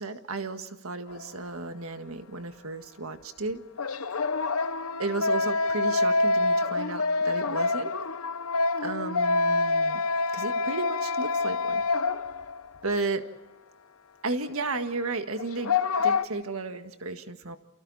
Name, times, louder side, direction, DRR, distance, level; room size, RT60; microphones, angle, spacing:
voice 1, 0.0-3.6 5.0-8.0 8.8-10.0 10.3-11.8 12.8-13.3 14.2-15.7 16.0-17.6, right 3 dB, 75° right, 8 dB, 1.8 m, -33 dB
sound 1, 1.1-1.3 3.8-12.7 12.9-13.0 15.4-16.2, left 3 dB, 80° left, 0.9 m, -26 dB
29.0 x 29.0 x 4.2 m, 1.1 s
head